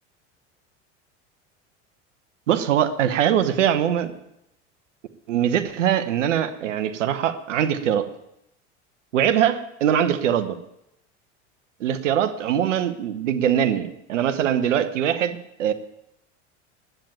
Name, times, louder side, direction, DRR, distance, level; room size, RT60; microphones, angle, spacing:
voice 1, 2.5-4.1 5.3-8.1 9.1-10.6 11.8-15.7, right 9 dB, 90° right, 12 dB, 1.0 m, -22 dB
10.0 x 9.1 x 9.0 m, 0.81 s
hypercardioid pair, 90°, 36 cm